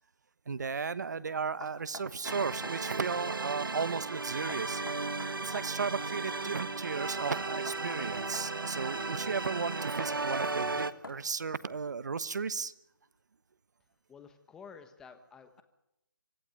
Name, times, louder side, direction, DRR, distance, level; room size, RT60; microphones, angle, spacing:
voice 1, 0.5-4.8 5.4-12.7, right 5 dB, 60° right, 15 dB, 1.3 m, -35 dB
Knock, 1.6-2.8 4.5-5.7 7.3-8.5 10.0-11.4, left 3 dB, 85° left, 3.8 m, -46 dB
sound 1, 2.2-10.9, right 3 dB, 85° right, 1.6 m, -35 dB
voice 2, 14.1-15.6, left 6 dB, 5° left, 8 dB, 1.3 m, -51 dB
25.5 x 15.5 x 9.2 m, 0.85 s
figure-of-eight pair, 165°, 11 cm